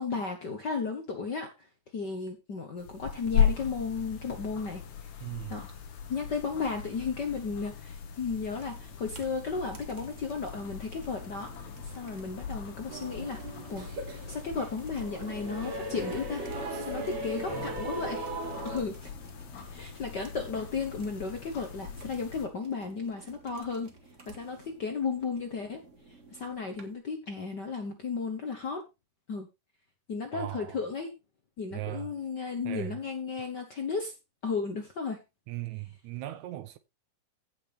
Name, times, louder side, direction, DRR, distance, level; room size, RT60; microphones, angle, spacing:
voice 1, 0.0-1.7 1.9-4.8 5.5-5.6 6.1-13.4 13.7-13.9 14.3-16.5 16.8-18.4 18.6-19.1 19.7-23.9 24.3-25.8 26.3-28.8 29.3-29.5 30.1-31.1 31.6-34.1 34.4-35.2, left 4 dB, 50° left, 1.3 m, -34 dB
sound 1, 2.8-22.5, left 8 dB, 80° left, 3.0 m, -37 dB
voice 2, 5.2-5.6 16.7-16.9 30.3-30.8 31.7-32.2 32.6-33.0 35.5-36.8, right 16 dB, 75° right, 1.9 m, -38 dB
sound 2, 8.6-27.0, right 3 dB, 30° right, 1.5 m, -53 dB
sound 3, 12.9-18.8, right 2 dB, 55° right, 3.7 m, -38 dB
16.0 x 6.1 x 3.5 m
omnidirectional pair, 3.6 m